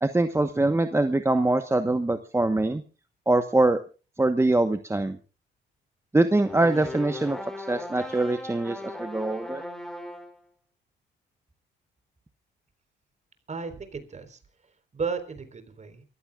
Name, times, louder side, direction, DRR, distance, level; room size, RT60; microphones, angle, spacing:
voice 1, 0.0-2.8 3.3-3.8 4.2-5.2 6.1-9.6, right 2 dB, 15° right, 8 dB, 1.1 m, -23 dB
sound 1, 6.4-10.4, left 1 dB, ahead, 3.2 m, -38 dB
voice 2, 13.5-14.4 14.9-16.0, right 5 dB, 35° right, 8 dB, 4.0 m, -34 dB
29.0 x 15.5 x 2.4 m, 0.35 s
cardioid pair, 90°, 20 cm